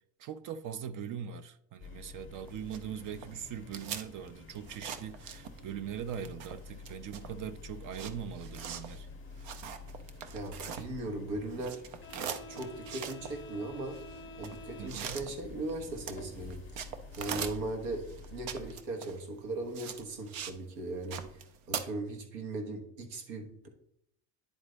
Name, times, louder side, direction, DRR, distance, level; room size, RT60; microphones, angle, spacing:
voice 1, 0.2-9.1 14.8-15.2, right 8 dB, 40° right, 0.5 m, -41 dB
sound 1, 1.8-18.8, left 4 dB, 25° left, 0.7 m, -48 dB
sound 2, 2.5-5.8 6.1-11.2 11.5-20.6 20.9-21.8, right 8 dB, 65° right, 0.9 m, -42 dB
voice 2, 10.3-11.8 12.5-14.0 14.4-16.8 17.2-18.0 18.3-21.4 21.7-23.7, right 2 dB, 85° right, 1.5 m, -38 dB
10.0 x 3.9 x 3.3 m
supercardioid pair, 90°, 49 cm